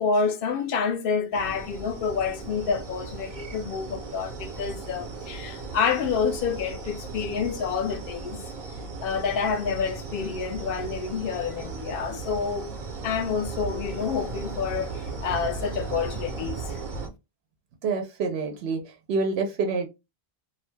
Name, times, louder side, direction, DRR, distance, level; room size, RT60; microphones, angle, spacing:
voice 1, 0.0-8.4 9.0-12.7 13.0-16.8, left 5 dB, 65° left, 0.7 m, -28 dB
sound 1, 1.3-17.1, right 4 dB, 55° right, 0.7 m, -37 dB
voice 2, 17.8-18.8 19.1-19.9, right 4 dB, 90° right, 0.8 m, -27 dB
2.7 x 2.1 x 3.1 m
omnidirectional pair, 1.0 m